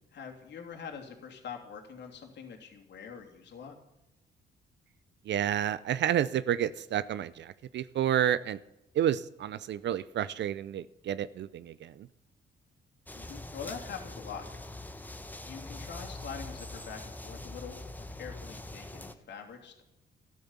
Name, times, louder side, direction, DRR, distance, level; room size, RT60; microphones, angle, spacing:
voice 1, 0.1-3.8 13.1-14.9 15.4-19.8, left 6 dB, 60° left, 2 dB, 3.0 m, -44 dB
voice 2, 5.3-8.6 8.9-12.1, right 10 dB, 65° right, 16 dB, 0.6 m, -30 dB
sound 1, 13.1-19.1, left 2 dB, 10° left, 1.2 m, -43 dB
13.5 x 10.5 x 7.3 m, 0.90 s
cardioid pair, 90°, 20 cm